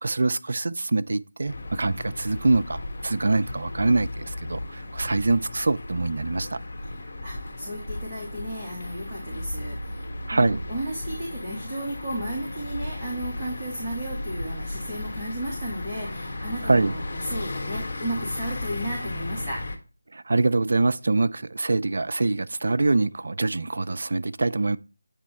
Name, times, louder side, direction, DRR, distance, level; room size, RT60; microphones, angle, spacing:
voice 1, 0.0-6.6 10.3-10.6 16.6-16.9 20.1-24.8, right 3 dB, 60° right, 0.3 m, -24 dB
sound 1, 1.5-19.8, left 2 dB, 50° left, 1.2 m, -35 dB
voice 2, 6.8-19.6, right 1 dB, 15° right, 1.5 m, -34 dB
8.2 x 3.1 x 4.1 m
figure-of-eight pair, 165°, 0 cm